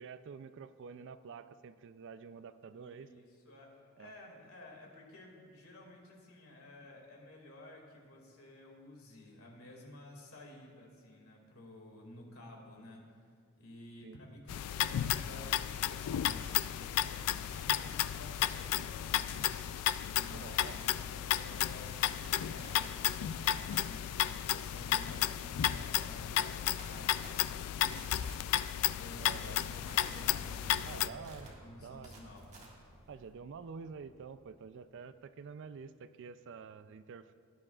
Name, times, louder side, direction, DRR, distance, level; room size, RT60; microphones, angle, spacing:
voice 1, 0.0-3.1 4.0-4.1 14.0-14.2 20.3-20.8 29.2-29.6 30.9-31.5 31.8-32.2 33.1-37.3, right 5 dB, 55° right, 13 dB, 0.3 m, -48 dB
voice 2, 2.8-13.0 13.6-19.6 20.2-28.1 28.9-32.4, left 1 dB, 70° left, 0 dB, 2.2 m, -52 dB
sound 1, 14.5-31.1, left 11 dB, 90° left, 0.3 m, -33 dB
sound 2, 16.2-16.6 17.4-18.8 19.4-19.9 20.7-21.0 21.4-33.3, right 2 dB, 30° right, 1.8 m, -57 dB
Boom, 29.3-35.2, equal, 5° left, 1.9 m, -56 dB
18.0 x 10.0 x 2.4 m, 2.2 s
head